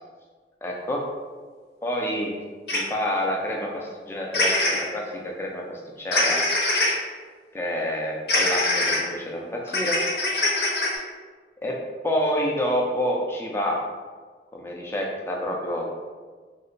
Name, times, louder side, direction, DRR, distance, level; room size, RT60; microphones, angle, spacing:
voice 1, 0.6-1.0 1.8-2.3 2.7-6.4 7.5-10.0 11.6-11.8 12.0-13.8 14.5-15.9, equal, 15° left, -1 dB, 0.4 m, -28 dB
sound 1, 2.7-2.8 4.3-4.8 6.1-6.9 8.3-9.0 9.7-11.0, left 2 dB, 65° left, 0.8 m, -22 dB
2.7 x 2.1 x 3.8 m, 1.5 s
head